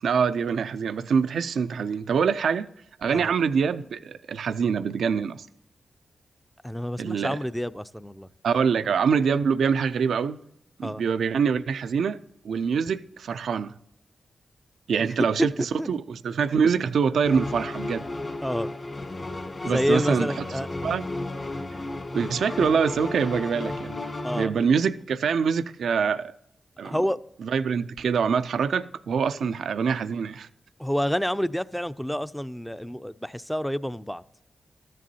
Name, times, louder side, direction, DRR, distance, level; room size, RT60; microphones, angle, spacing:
voice 1, 0.0-2.7 3.0-5.5 7.0-7.4 8.4-10.4 10.8-12.2 12.4-13.7 14.9-15.5 15.9-18.1 19.7-20.3 20.8-21.0 22.1-23.9 24.3-26.3 26.8-27.0 27.4-30.5, right 6 dB, 85° right, 0.3 m, -24 dB
voice 2, 6.6-8.3 10.8-11.0 15.8-15.9 18.4-18.7 19.6-20.7 24.2-24.5 26.8-27.2 29.4-29.5 30.8-34.2, equal, 5° left, 0.4 m, -28 dB
sound 1, 17.2-24.5, left 2 dB, 45° left, 1.6 m, -33 dB
13.5 x 7.5 x 2.7 m
cardioid pair, 45°, 0 cm